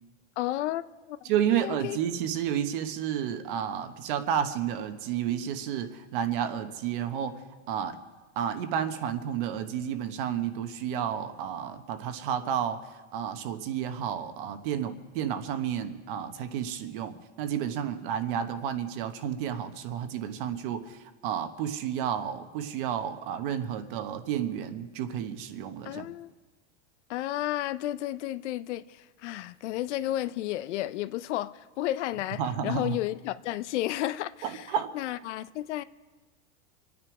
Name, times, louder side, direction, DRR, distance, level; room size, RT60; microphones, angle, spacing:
voice 1, 0.4-0.8 1.1-1.2 1.5-2.0 25.8-26.3 27.1-35.8, left 14 dB, 65° left, 0.6 m, -32 dB
voice 2, 1.2-7.4 7.7-8.0 8.4-26.1 32.4-33.0 34.4-34.9, right 9 dB, 45° right, 1.1 m, -31 dB
26.5 x 9.5 x 4.8 m
supercardioid pair, 175°, 38 cm